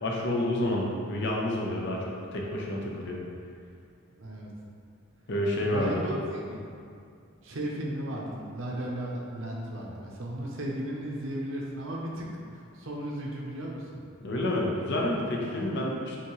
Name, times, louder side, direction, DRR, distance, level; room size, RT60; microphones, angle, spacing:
voice 1, 0.0-2.0 2.3-3.2 5.3-6.0 14.2-16.2, left 1 dB, 55° left, -2 dB, 0.7 m, -29 dB
voice 2, 4.1-4.5 5.6-6.6 7.4-14.0 15.5-15.7, right 1 dB, 65° right, -2 dB, 0.7 m, -35 dB
5.9 x 2.8 x 3.1 m, 2.3 s
head